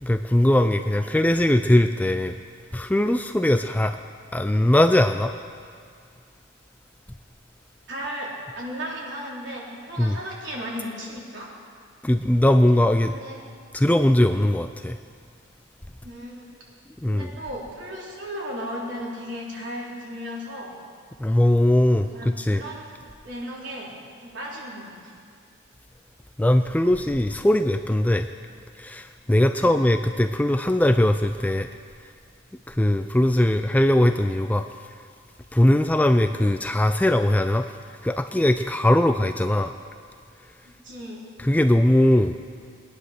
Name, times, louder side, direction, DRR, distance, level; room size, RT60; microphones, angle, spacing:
voice 1, 0.0-2.3 2.7-4.0 4.3-5.3 10.0-10.2 12.0-13.1 13.7-15.0 17.0-17.3 21.2-22.6 26.4-28.3 28.8-31.7 32.7-34.7 35.5-37.7 38.0-39.7 41.4-42.4, left 1 dB, 10° left, 8 dB, 0.3 m, -20 dB
voice 2, 7.9-11.5 13.1-13.4 16.0-16.5 17.0-20.7 22.1-23.0 23.2-23.9 24.2-25.1 29.5-29.7 39.2-39.3 40.8-41.2, equal, 65° right, -4 dB, 3.7 m, -35 dB
21.5 x 10.0 x 6.5 m, 2.1 s
head